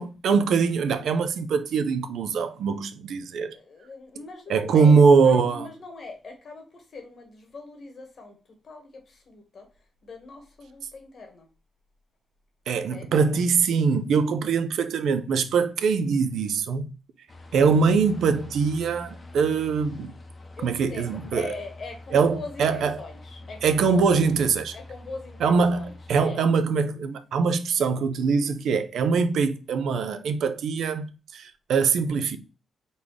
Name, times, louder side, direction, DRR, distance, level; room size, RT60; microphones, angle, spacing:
voice 1, 0.0-3.6 4.5-5.7 12.7-16.9 17.5-20.1 20.6-21.5 22.1-22.9 23.6-24.8 25.4-32.4, right 5 dB, 75° right, 0.5 m, -22 dB
voice 2, 3.5-11.5 12.7-13.1 20.6-24.2 24.7-26.0 26.2-26.5, left 3 dB, 40° left, 1.3 m, -41 dB
sound 1, 17.3-26.2, left 2 dB, 25° left, 0.8 m, -45 dB
4.1 x 3.6 x 3.1 m
wide cardioid pair, 170°, 0 cm